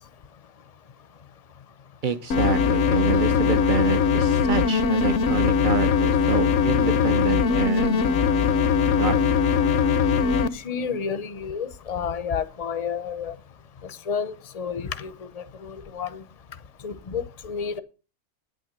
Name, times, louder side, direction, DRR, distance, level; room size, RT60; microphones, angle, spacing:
voice 1, 2.0-8.3 9.0-9.2, right 5 dB, 40° right, 1.0 m, -27 dB
sound 1, 2.3-10.5, left 6 dB, 70° left, 1.0 m, -21 dB
voice 2, 10.5-13.4 13.8-16.2 16.8-17.8, left 6 dB, 35° left, 0.7 m, -31 dB
9.0 x 9.0 x 6.5 m
omnidirectional pair, 1.4 m